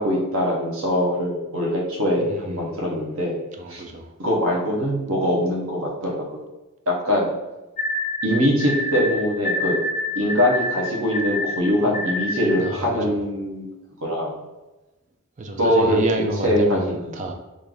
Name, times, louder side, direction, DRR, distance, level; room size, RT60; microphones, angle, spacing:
voice 1, 0.0-3.4 3.7-3.8 4.2-6.4 6.9-7.3 8.2-9.8 10.2-13.7 14.0-14.4 15.6-16.0 16.4-17.1, equal, 75° right, -3 dB, 0.9 m, -22 dB
voice 2, 2.2-2.8 3.6-4.1 12.6-13.2 15.4-17.3, right 2 dB, 35° right, 4 dB, 0.4 m, -29 dB
sound 1, 7.8-12.7, left 1 dB, 35° left, 0.7 m, -27 dB
3.1 x 2.5 x 3.8 m, 1.1 s
head